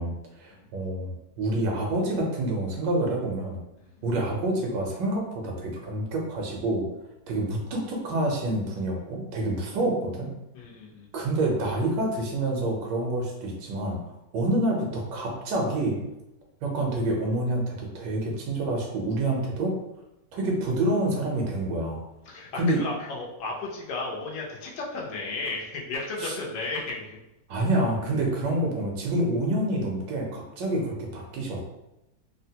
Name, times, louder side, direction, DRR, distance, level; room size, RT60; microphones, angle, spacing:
voice 1, 0.0-3.6 4.0-6.8 7.3-10.3 11.1-14.0 14.3-16.0 16.6-19.7 20.3-22.0 22.6-22.8 26.2-26.3 27.5-31.6, right 1 dB, 90° right, 0 dB, 1.4 m, -27 dB
voice 2, 10.5-11.1 22.3-27.2, left 3 dB, 80° left, -2 dB, 1.4 m, -34 dB
3.6 x 2.1 x 2.7 m, 0.91 s
omnidirectional pair, 1.9 m